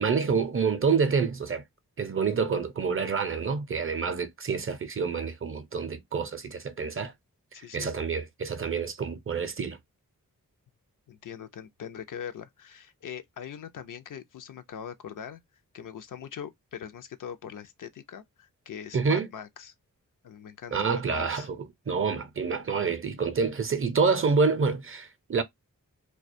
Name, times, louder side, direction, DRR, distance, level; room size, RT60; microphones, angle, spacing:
voice 1, 0.0-1.6 2.0-7.1 7.7-9.8 18.9-19.3 20.7-25.4, right 5 dB, 40° right, 0.5 m, -27 dB
voice 2, 7.5-7.9 11.1-15.4 15.7-19.7 20.2-21.5, left 8 dB, 65° left, 0.5 m, -42 dB
2.3 x 2.2 x 2.5 m
cardioid pair, 50°, 35 cm